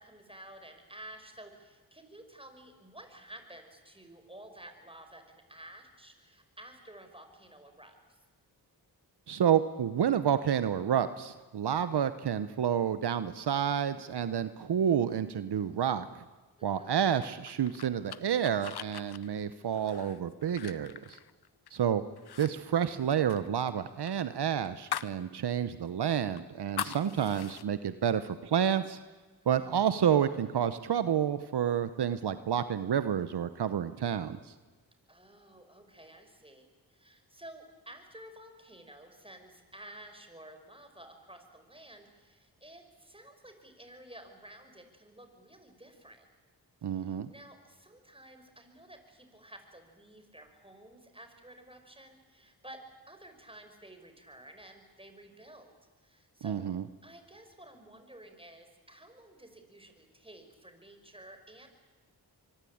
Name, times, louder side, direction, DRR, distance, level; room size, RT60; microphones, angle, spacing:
voice 1, 0.0-8.2 16.6-17.0 29.4-29.7 35.1-46.3 46.8-55.7 56.0-56.7 57.0-61.7, right 1 dB, 15° right, 6 dB, 5.7 m, -52 dB
voice 2, 9.3-16.1 16.6-21.2 21.7-22.0 22.4-29.0 29.5-34.5 46.8-47.3 56.4-56.8, right 9 dB, 75° right, 12 dB, 1.0 m, -29 dB
sound 1, 17.2-21.8 22.2-22.5 22.8-25.2 25.6-25.7 26.1-27.6, left 9 dB, 70° left, 0.9 m, -41 dB
24.5 x 23.0 x 8.7 m, 1.3 s
cardioid pair, 45°, 40 cm